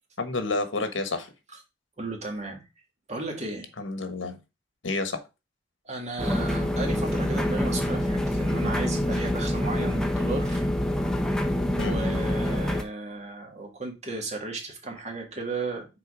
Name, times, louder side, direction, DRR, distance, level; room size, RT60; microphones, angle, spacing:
voice 1, 0.2-1.3 3.8-4.4 4.8-5.2 11.8-12.0, left 3 dB, 85° left, 1.2 m, -29 dB
voice 2, 2.0-2.6 3.1-3.7 5.9-10.6 11.9-15.9, right 3 dB, 35° right, 1.9 m, -34 dB
sound 1, 6.2-12.8, left 1 dB, 5° left, 0.9 m, -26 dB
6.6 x 4.2 x 4.9 m
head